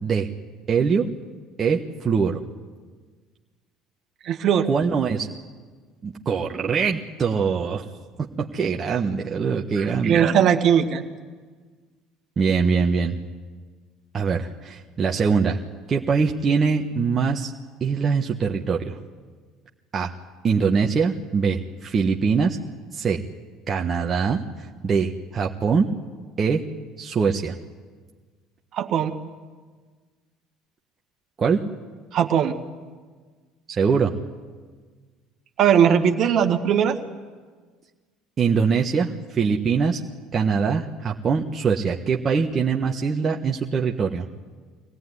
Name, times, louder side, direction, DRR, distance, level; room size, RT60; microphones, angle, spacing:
voice 1, 0.7-1.1 1.6-2.4 4.6-5.3 6.0-7.9 8.2-10.3 12.4-13.2 14.1-15.6 15.9-17.5 17.8-19.0 19.9-20.1 20.4-22.6 22.9-23.2 23.7-25.9 26.4-26.6 27.0-27.5 31.4-31.6 33.7-34.1 38.4-40.0 40.3-44.3, right 5 dB, 35° right, 1 dB, 1.4 m, -23 dB
voice 2, 4.2-4.7 9.8-11.0 28.7-29.1 32.1-32.6 35.6-37.0, right 8 dB, 55° right, 6 dB, 1.8 m, -19 dB
24.0 x 17.0 x 9.7 m, 1.5 s
hypercardioid pair, 70°, 0 cm